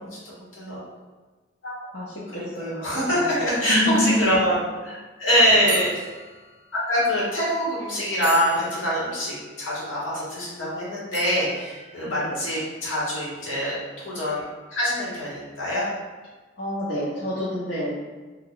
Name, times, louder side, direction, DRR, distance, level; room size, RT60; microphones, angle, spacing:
voice 1, 0.2-0.8 2.6-4.5 4.8-4.9 5.2-5.9 6.9-15.9, equal, 85° left, -7 dB, 1.2 m, -24 dB
voice 2, 1.9-2.8 3.1-3.4 3.7-4.4 12.1-12.5 16.6-18.0, left 1 dB, 65° left, -10 dB, 0.6 m, -27 dB
sound 1, 4.7-4.9 5.7-7.1 7.7-7.8 8.2-10.6 11.1-12.8, right 3 dB, 40° right, 0.5 m, -38 dB
2.3 x 2.3 x 3.5 m, 1.3 s
head